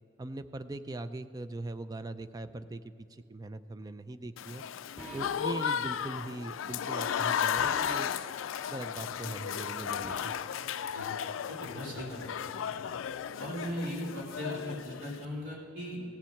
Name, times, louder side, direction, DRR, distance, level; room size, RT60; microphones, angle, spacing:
voice 1, 0.2-4.6 5.1-8.1 8.7-10.3, right 2 dB, 20° right, 11 dB, 0.4 m, -40 dB
Applause / Crowd, 4.4-15.2, left 8 dB, 85° left, 0.4 m, -34 dB
sound 1, 5.0-5.6 7.6-8.1 10.0-10.5, equal, ahead, 2.5 m, -46 dB
voice 2, 11.5-12.5 13.4-16.0, equal, 65° right, -4 dB, 3.6 m, -38 dB
16.5 x 7.4 x 6.5 m, 2.8 s
head